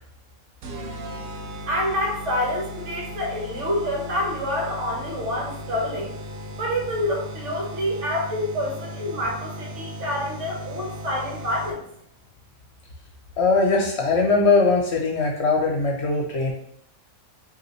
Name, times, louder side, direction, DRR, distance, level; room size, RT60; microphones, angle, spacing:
sound 1, 0.6-12.0, equal, 75° right, 1.1 m, -37 dB
voice 1, 1.7-6.1 6.6-11.8, left 1 dB, 60° right, -3 dB, 1.5 m, -27 dB
voice 2, 13.4-16.5, left 3 dB, 55° left, 1 dB, 0.9 m, -20 dB
5.2 x 2.8 x 3.1 m, 0.69 s
omnidirectional pair, 1.5 m